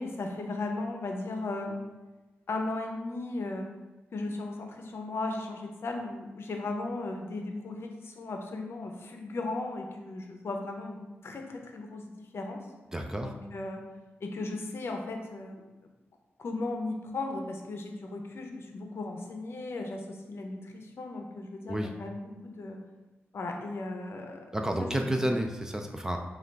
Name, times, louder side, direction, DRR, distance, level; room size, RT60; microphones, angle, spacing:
voice 1, 0.0-1.8 2.5-3.7 4.1-12.6 13.2-13.8 14.2-15.6 16.4-22.8 23.3-25.2, left 2 dB, 65° left, 3 dB, 0.6 m, -36 dB
voice 2, 12.9-13.3 21.7-21.9 24.5-26.2, right 1 dB, 10° right, 3 dB, 0.4 m, -30 dB
5.1 x 2.4 x 3.3 m, 1.1 s
cardioid pair, 85°, 5 cm